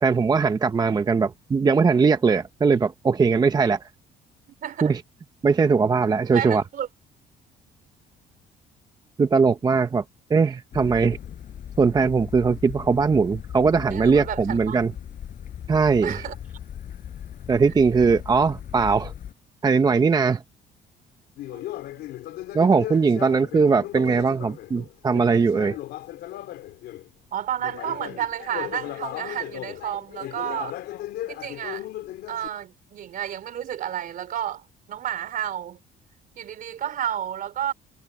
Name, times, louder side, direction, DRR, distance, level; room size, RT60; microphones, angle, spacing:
voice 1, 0.0-3.9 4.8-5.0 5.4-6.6 9.2-10.0 10.3-11.2 11.8-14.9 15.7-16.3 17.5-19.1 19.6-20.4 22.5-25.8, right 5 dB, 25° right, 0.7 m, -20 dB
voice 2, 4.6-5.0 6.3-6.9 13.9-14.8 16.0-16.3 21.5-22.1 27.3-30.8 31.3-31.9 32.3-34.6 34.9-35.8 36.4-37.7, right 10 dB, 55° right, 3.3 m, -31 dB
sound 1, 10.7-19.3, left 9 dB, 55° left, 5.3 m, -38 dB
Conversation, 21.4-27.1 27.6-32.5, left 14 dB, 75° left, 3.5 m, -37 dB
cardioid pair, 110°, 17 cm